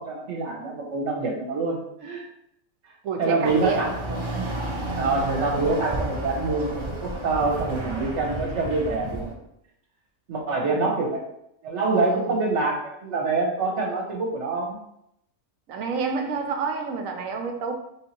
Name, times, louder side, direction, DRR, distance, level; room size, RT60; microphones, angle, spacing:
voice 1, 0.0-2.2 3.2-4.4 5.0-9.4 10.3-11.2 11.6-14.8, right 3 dB, 60° right, 0 dB, 1.3 m, -26 dB
voice 2, 3.0-3.9 10.7-10.9 11.9-12.3 15.7-17.7, right 5 dB, 80° right, 4 dB, 1.0 m, -29 dB
Chatter / Car passing by / Motorcycle, 3.4-9.3, right 1 dB, 35° right, 0.4 m, -31 dB
3.7 x 2.7 x 4.2 m, 0.77 s
omnidirectional pair, 1.4 m